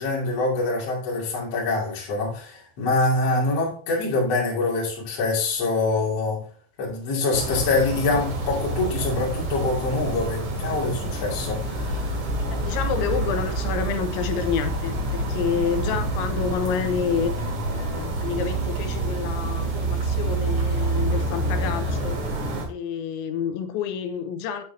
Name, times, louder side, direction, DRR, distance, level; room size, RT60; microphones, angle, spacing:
voice 1, 0.0-6.4 6.8-12.2, left 3 dB, 40° left, 3.0 m, -25 dB
sound 1, 7.3-22.7, right 2 dB, 50° right, 3.3 m, -27 dB
voice 2, 12.5-22.2 22.7-24.6, left 7 dB, 85° left, 3.0 m, -29 dB
8.2 x 8.0 x 2.7 m
omnidirectional pair, 5.4 m